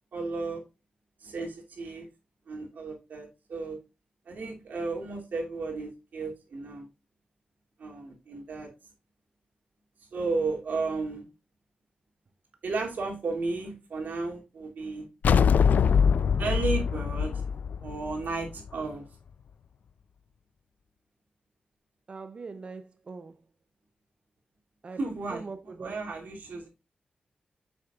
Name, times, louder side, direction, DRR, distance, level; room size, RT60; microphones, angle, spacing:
voice 1, 0.1-0.6 1.2-2.1 2.5-3.8 4.3-6.9 7.8-8.7 10.1-11.2 12.6-15.1 16.4-17.4 17.8-19.1 25.0-26.7, right 3 dB, 90° right, 2.6 m, -33 dB
sound 1, 15.2-18.7, left 6 dB, 85° left, 0.4 m, -23 dB
voice 2, 22.1-23.3 24.8-25.0 25.3-26.0, right 4 dB, 40° right, 0.6 m, -41 dB
8.3 x 6.2 x 2.4 m
wide cardioid pair, 160°, 3 cm